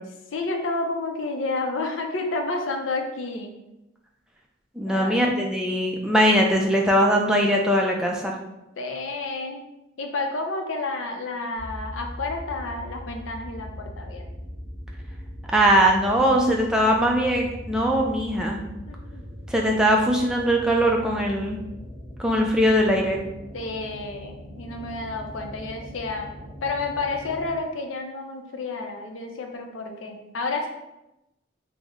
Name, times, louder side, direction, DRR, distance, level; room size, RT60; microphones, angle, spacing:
voice 1, 0.3-3.5 4.8-5.3 8.8-9.6 10.0-14.3 18.9-19.2 23.5-26.3 26.6-30.7, left 3 dB, 70° left, 3 dB, 0.5 m, -30 dB
voice 2, 4.8-8.4 15.5-18.6 19.5-21.6 22.2-23.2, equal, 5° right, -1 dB, 0.3 m, -21 dB
sound 1, 11.5-27.6, equal, 15° left, 0.9 m, -40 dB
3.1 x 2.0 x 3.5 m, 0.93 s
head